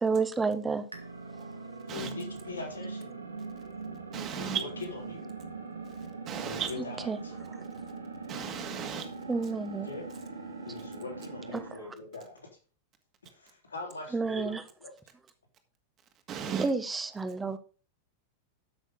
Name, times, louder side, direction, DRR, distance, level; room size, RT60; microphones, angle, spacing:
voice 1, 0.0-0.8 7.1-7.2 9.3-9.9 11.5-11.6 14.1-14.6 16.6-17.6, right 4 dB, 15° right, 1.1 m, -29 dB
sound 1, 0.9-11.8, right 4 dB, 80° right, 1.5 m, -41 dB
voice 2, 1.9-3.1 4.4-5.3 6.4-7.3 9.8-10.1 10.6-12.5 13.3-15.0, left 4 dB, 75° left, 3.7 m, -42 dB
voice 3, 4.1-4.6 6.3-6.7 8.3-9.1 16.3-16.7, right 8 dB, 30° right, 2.0 m, -34 dB
12.5 x 6.4 x 3.8 m
figure-of-eight pair, 90°, 0 cm